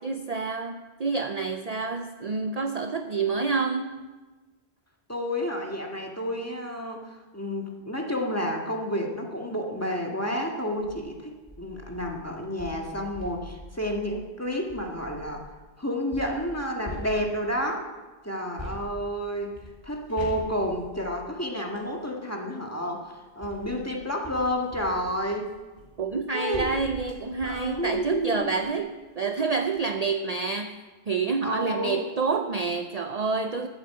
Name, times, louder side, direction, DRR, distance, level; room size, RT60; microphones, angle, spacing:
voice 1, 0.0-4.1 26.0-33.7, right 4 dB, 45° right, 7 dB, 0.7 m, -28 dB
voice 2, 5.1-15.4 15.8-17.9 18.2-25.5 26.3-26.7 27.4-28.5 31.4-32.0, equal, 15° left, 0 dB, 1.8 m, -30 dB
sound 1, 10.7-11.0 11.5-15.5 16.1-17.7 18.6-21.9 22.9-28.8 29.2-29.3 29.6-29.8, left 1 dB, 25° right, 3.2 m, -44 dB
14.0 x 8.1 x 7.6 m, 1.2 s
omnidirectional pair, 1.1 m